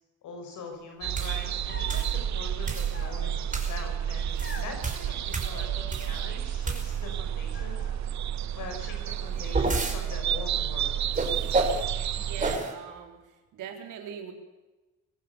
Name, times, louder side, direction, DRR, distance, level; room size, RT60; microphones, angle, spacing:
voice 1, 0.2-7.9 8.5-10.9, left 4 dB, 75° left, 3 dB, 5.8 m, -43 dB
sound 1, 1.0-12.6, right 10 dB, 65° right, 1.0 m, -31 dB
sound 2, 1.1-1.4 1.9-2.2 2.6-3.0 3.5-3.8 4.2-6.2 6.6-7.2 9.1-10.0 11.1-11.8 12.4-12.7, right 3 dB, 25° right, 5.4 m, -30 dB
sound 3, 1.7-2.1 2.9-3.6 4.4-4.8 5.4-6.3 6.5-7.1 7.5-8.1 8.8-9.7 10.0-10.7, left 3 dB, 35° left, 4.8 m, -46 dB
voice 2, 12.1-13.2 13.5-14.3, right 8 dB, 90° right, 3 dB, 4.0 m, -40 dB
24.0 x 17.0 x 7.0 m, 1.1 s
cardioid pair, 90°, 30 cm